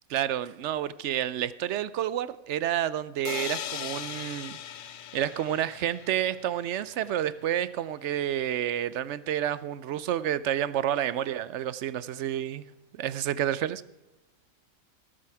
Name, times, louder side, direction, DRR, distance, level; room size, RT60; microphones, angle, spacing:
voice 1, 0.1-4.6 5.1-12.6 13.0-13.8, right 11 dB, 65° right, 17 dB, 0.8 m, -29 dB
sound 1, 3.2-7.1, left 10 dB, 80° left, 0.4 m, -39 dB
18.5 x 7.7 x 4.7 m, 0.98 s
omnidirectional pair, 1.5 m